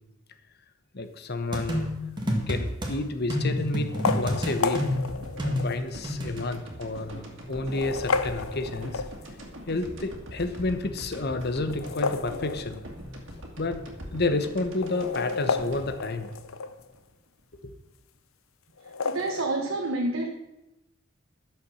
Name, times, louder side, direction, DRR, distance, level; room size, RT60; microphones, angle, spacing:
voice 1, 0.9-1.9 2.5-3.9 4.1-4.8 5.2-9.0 9.7-12.8 13.6-13.8 14.1-16.3 17.6-17.7, left 2 dB, 50° left, 9 dB, 1.0 m, -30 dB
sound 1, 1.5-2.9 3.3-6.4, left 1 dB, 20° right, 1.8 m, -29 dB
sound 2, 2.2-2.6 3.8-5.9 6.5-6.6 7.5-9.5 11.6-13.1 13.4-13.5 13.7-13.8 14.6-16.9 18.8-19.4, left 4 dB, 85° left, 0.7 m, -32 dB
sound 3, 4.8-17.0 17.4-17.5, equal, 65° right, 2.2 m, -42 dB
voice 2, 19.0-20.3, right 2 dB, 80° right, 1 dB, 1.2 m, -28 dB
12.0 x 7.0 x 6.3 m, 0.94 s
head